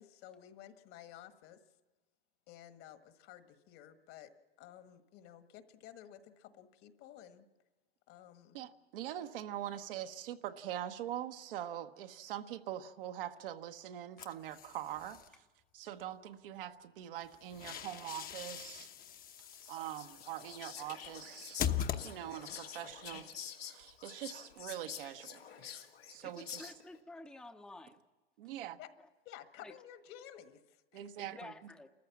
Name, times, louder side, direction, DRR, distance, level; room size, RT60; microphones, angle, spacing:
voice 1, 0.0-1.6 2.5-4.3 4.6-7.5 8.1-8.6 28.8-28.9 29.2-31.0, left 11 dB, 45° left, 1.6 m, -53 dB
voice 2, 8.5-15.4 15.7-18.9 19.7-21.6 22.0-23.3 23.6-25.4 26.1-26.7 28.4-28.8 30.9-31.5, right 11 dB, 65° right, 1.2 m, -43 dB
sound 1, 14.2-15.3 17.2-22.6, left 9 dB, 30° left, 1.0 m, -41 dB
Whispering, 19.5-27.0, left 9 dB, 85° left, 2.1 m, -48 dB
voice 3, 26.2-28.0 29.0-29.1 29.6-29.7 31.2-31.9, left 2 dB, 5° left, 0.8 m, -51 dB
30.0 x 14.5 x 7.3 m
hypercardioid pair, 100°, 29 cm